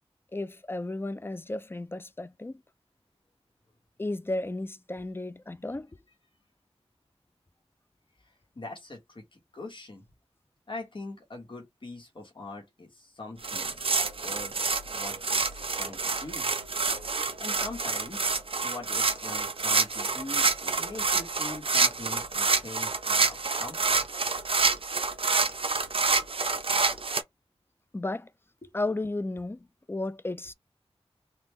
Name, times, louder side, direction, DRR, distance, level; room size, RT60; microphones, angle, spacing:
voice 1, 0.3-2.6 4.0-5.9 27.9-28.3 28.7-30.5, left 2 dB, 20° left, 0.4 m, -33 dB
voice 2, 8.5-10.0 10.7-14.6 14.9-16.5 17.4-24.0 28.6-28.7, left 2 dB, 50° left, 1.3 m, -43 dB
sound 1, 13.4-27.2, right 4 dB, 55° right, 0.7 m, -27 dB
3.3 x 2.5 x 3.2 m
wide cardioid pair, 70°, 11 cm